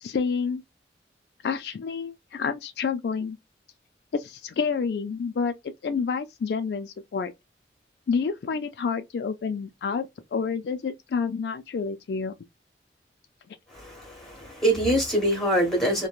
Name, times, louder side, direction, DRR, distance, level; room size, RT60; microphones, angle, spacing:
voice 1, 0.0-0.6 1.4-3.4 4.1-5.5 5.8-7.3 8.1-12.3, left 5 dB, 65° left, 0.3 m, -29 dB
voice 2, 13.7-16.1, right 1 dB, ahead, 1.2 m, -24 dB
3.0 x 2.2 x 2.3 m
head